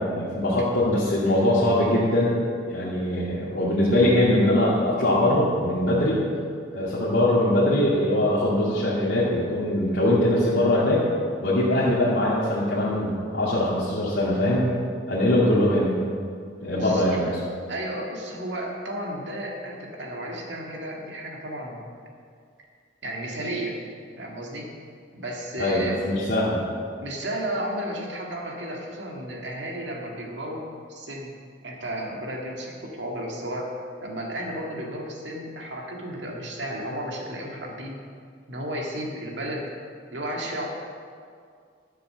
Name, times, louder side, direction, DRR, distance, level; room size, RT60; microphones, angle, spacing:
voice 1, 0.0-2.4 2.7-6.2 6.7-11.0 11.4-14.7 15.1-16.0 16.6-17.3 25.6-26.7, left 1 dB, 70° left, -9 dB, 2.3 m, -22 dB
voice 2, 16.6-17.4 17.7-21.8 23.0-23.8 24.2-24.7 25.1-26.0 27.0-30.6 30.9-31.3 31.6-33.7 34.0-38.0 38.5-39.7 40.1-40.6, right 1 dB, 70° right, 0 dB, 1.9 m, -33 dB
12.0 x 6.8 x 6.7 m, 2.2 s
head